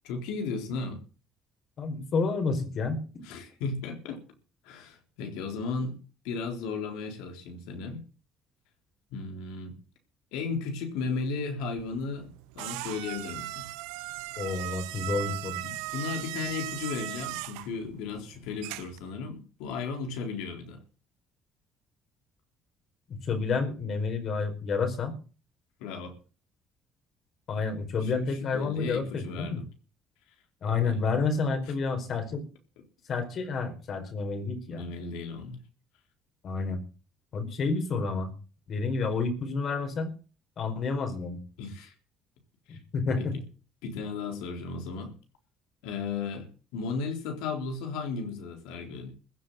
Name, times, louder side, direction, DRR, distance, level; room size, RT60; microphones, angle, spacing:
voice 1, 0.0-1.0 3.2-4.2 4.6-6.0 6.2-8.0 9.1-9.7 10.3-12.3 12.5-13.7 15.6-20.8 25.8-26.1 28.0-29.7 30.8-31.0 34.7-35.6 41.6-41.9 42.7-42.8 43.2-43.4 43.8-45.1 45.8-49.1, left 4 dB, 80° left, 5 dB, 3.8 m, -35 dB
voice 2, 1.8-3.0 14.4-15.6 23.1-25.1 27.5-29.6 30.6-32.4 33.1-34.9 36.4-36.8 37.3-38.3 38.7-40.1 40.6-41.4 42.7-43.3, left 4 dB, 55° left, 7 dB, 4.8 m, -29 dB
sound 1, 11.8-19.1, right 19 dB, 85° right, 0.7 m, -38 dB
15.0 x 7.7 x 8.0 m, 0.37 s
hypercardioid pair, 60°, 0 cm